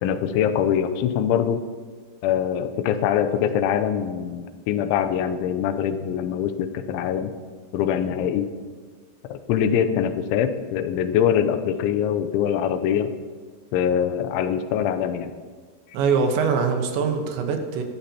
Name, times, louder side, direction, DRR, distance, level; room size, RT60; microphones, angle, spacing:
voice 1, 0.0-1.6 2.2-7.3 7.7-8.5 9.3-13.1 13.7-15.3, left 9 dB, 80° left, 10 dB, 3.0 m, -23 dB
voice 2, 15.9-17.8, right 5 dB, 70° right, 4 dB, 3.2 m, -23 dB
22.5 x 13.0 x 2.9 m, 1.5 s
omnidirectional pair, 5.7 m